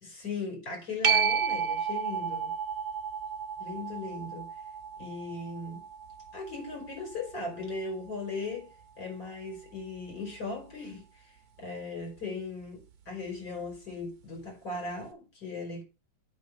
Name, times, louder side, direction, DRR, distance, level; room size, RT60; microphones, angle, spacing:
voice 1, 0.1-2.5 3.6-4.5 5.0-5.8 6.3-11.0 11.6-15.8, left 3 dB, 55° left, 5.5 m, -38 dB
sound 1, 1.0-8.2 13.7-13.8, right 6 dB, 55° right, 1.4 m, -32 dB
8.5 x 4.0 x 6.7 m
omnidirectional pair, 2.1 m